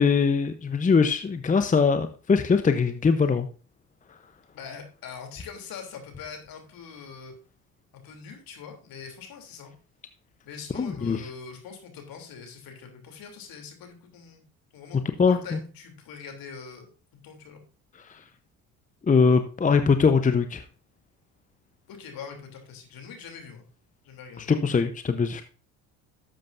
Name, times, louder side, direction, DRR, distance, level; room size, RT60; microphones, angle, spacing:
voice 1, 0.0-3.5 10.7-11.2 15.2-15.6 19.1-20.6 24.4-25.4, left 5 dB, 20° left, 9 dB, 0.8 m, -22 dB
voice 2, 4.5-7.3 7.9-9.7 10.4-14.4 14.7-15.0 15.3-17.6 21.9-23.7 24.0-24.5, left 6 dB, 60° left, 4 dB, 3.1 m, -43 dB
12.0 x 7.6 x 2.6 m, 0.38 s
hypercardioid pair, 65°, 40 cm